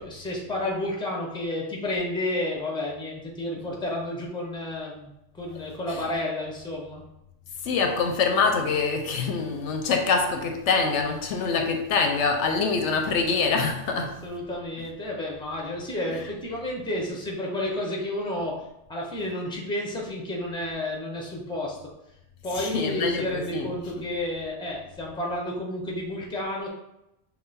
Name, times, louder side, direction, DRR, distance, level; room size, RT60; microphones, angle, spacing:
voice 1, 0.0-7.0 14.2-21.8 22.4-26.7, left 1 dB, 5° left, -2 dB, 0.8 m, -31 dB
voice 2, 7.6-14.2 16.1-16.3 22.5-23.7 24.0-24.1, left 4 dB, 75° left, 4 dB, 0.9 m, -25 dB
5.6 x 2.3 x 4.1 m, 0.86 s
omnidirectional pair, 1.3 m